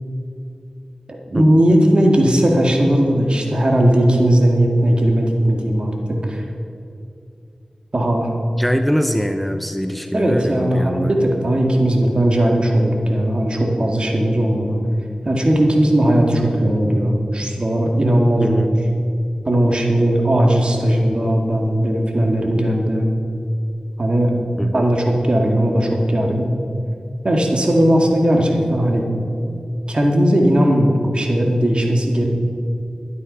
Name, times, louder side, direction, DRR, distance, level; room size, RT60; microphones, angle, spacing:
voice 1, 1.1-5.9 6.2-6.4 7.9-8.3 10.1-14.8 15.2-18.8 19.5-23.1 24.0-24.3 24.7-26.5 27.2-29.1 29.9-32.3, right 1 dB, 50° right, 1 dB, 2.1 m, -17 dB
voice 2, 8.6-11.1 18.4-18.7 24.6-24.9, equal, 5° left, 7 dB, 0.7 m, -22 dB
12.5 x 9.8 x 5.5 m, 2.7 s
wide cardioid pair, 50°, 2 cm